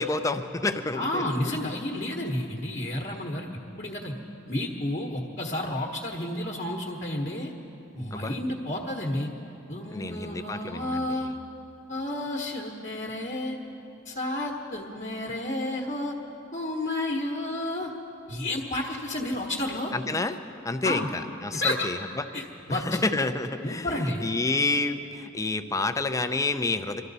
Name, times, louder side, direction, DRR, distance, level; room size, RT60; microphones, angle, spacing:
voice 1, 0.0-1.2 8.1-8.4 9.9-11.2 19.9-20.4 20.6-22.3 22.7-23.9 24.2-27.0, left 3 dB, 15° left, 8 dB, 0.5 m, -29 dB
voice 2, 0.9-3.5 3.8-4.1 4.5-7.5 7.9-9.3 9.7-11.3 11.9-13.6 14.0-16.1 16.5-17.9 18.3-19.9 20.8-21.1 21.5-21.9 22.3-23.0 23.6-24.2, left 1 dB, 40° left, -1 dB, 1.2 m, -31 dB
24.0 x 13.0 x 4.1 m, 2.9 s
head